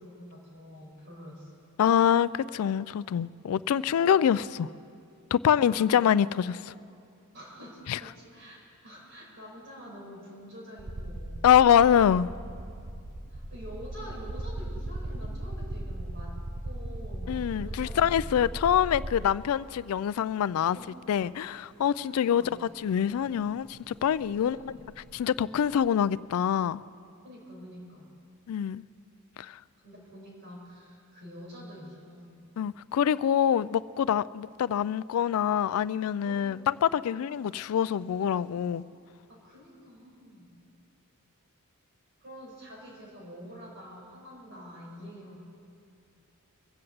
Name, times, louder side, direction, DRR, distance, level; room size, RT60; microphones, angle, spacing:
voice 1, 0.0-1.5 5.5-6.5 7.3-8.6 8.8-11.6 13.3-16.4 16.6-18.6 20.7-21.0 22.1-22.6 24.4-24.8 27.2-28.1 29.8-32.2 36.2-36.4 38.3-38.4 39.3-40.5 42.2-45.4, equal, 55° right, 5.0 m, -46 dB
voice 2, 1.8-4.7 5.3-6.7 7.9-8.0 11.4-12.3 17.3-20.8 21.1-22.4 22.8-24.6 25.1-26.8 28.5-28.8 29.4-29.6 32.6-38.8, left 9 dB, 70° left, 0.3 m, -25 dB
sound 1, 10.8-19.5 20.7-20.8 22.9-23.0 23.3-25.8, right 1 dB, 40° right, 0.7 m, -38 dB
23.0 x 7.8 x 7.8 m
head